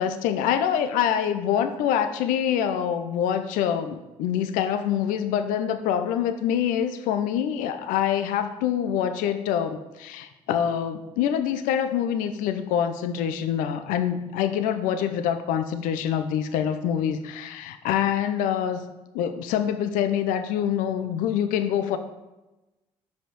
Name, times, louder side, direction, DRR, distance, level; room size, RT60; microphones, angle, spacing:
voice 1, 0.0-22.0, left 9 dB, 90° left, 10 dB, 0.5 m, -25 dB
5.8 x 5.1 x 6.4 m, 1.0 s
supercardioid pair, 60°, 13 cm